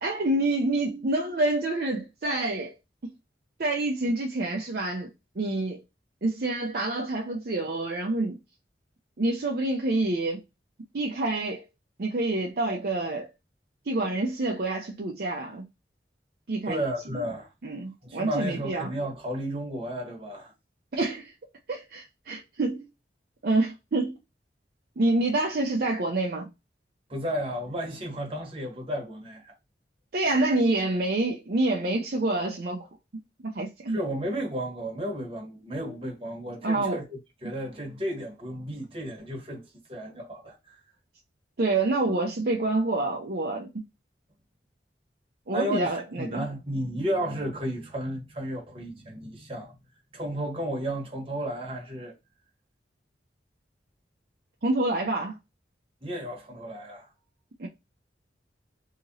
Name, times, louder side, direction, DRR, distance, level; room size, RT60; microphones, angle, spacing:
voice 1, 0.0-2.7 3.0-3.1 3.6-5.1 5.4-5.8 6.2-8.4 9.2-10.4 10.9-11.6 12.0-13.3 13.9-15.6 16.5-16.8 17.1-17.2 17.6-18.9 20.9-21.3 21.7-22.9 23.4-24.2 25.0-26.5 30.1-32.9 33.4-34.0 36.6-37.0 41.6-43.7 45.5-46.4 54.6-55.3 57.6-57.7, right 2 dB, 55° right, 0.5 m, -27 dB
voice 2, 16.6-17.5 18.0-20.5 27.1-29.5 33.9-40.8 45.5-49.7 50.1-52.1 56.0-57.1, equal, 30° right, 1.1 m, -33 dB
2.9 x 2.8 x 2.6 m
head